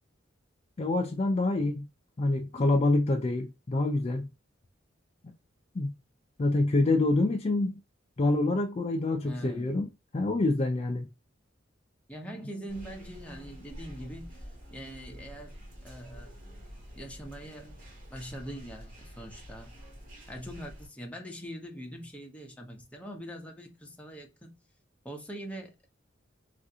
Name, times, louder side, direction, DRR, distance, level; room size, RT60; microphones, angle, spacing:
voice 1, 0.8-1.9 2.2-4.3 5.8-5.9 6.4-7.7 8.2-9.9 10.1-11.1, left 2 dB, 30° left, 0.4 m, -26 dB
voice 2, 9.2-9.7 12.1-14.4 14.7-15.6 15.8-16.3 16.9-17.8 18.1-19.7 20.3-24.6 25.0-25.9, equal, 5° left, 0.7 m, -42 dB
sound 1, 12.7-20.9, equal, 45° right, 1.9 m, -48 dB
3.4 x 2.5 x 2.7 m
head